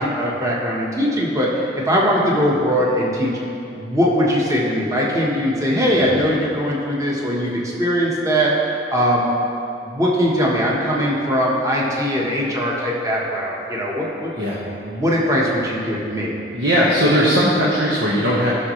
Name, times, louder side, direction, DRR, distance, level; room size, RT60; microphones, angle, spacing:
voice 1, 0.0-1.6 1.9-3.4 3.7-8.5 8.9-9.3 9.8-14.3 14.8-16.3, equal, 20° right, -4 dB, 1.3 m, -20 dB
voice 2, 16.5-18.5, equal, 85° right, -6 dB, 1.3 m, -18 dB
15.5 x 6.4 x 3.2 m, 2.7 s
head